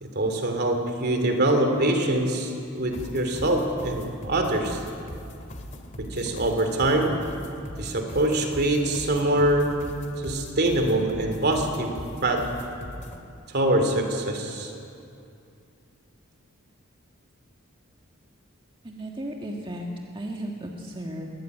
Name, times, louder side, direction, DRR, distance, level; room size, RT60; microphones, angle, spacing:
voice 1, 0.0-4.8 6.0-7.2 7.8-9.7 10.2-11.9 12.2-12.5 13.5-14.7, right 1 dB, 50° right, 5 dB, 3.0 m, -24 dB
sound 1, 2.9-13.2, left 1 dB, 35° left, 2.2 m, -40 dB
voice 2, 18.8-19.9 20.1-21.3, right 1 dB, 25° right, 0 dB, 1.8 m, -35 dB
22.0 x 17.5 x 9.4 m, 2.6 s
head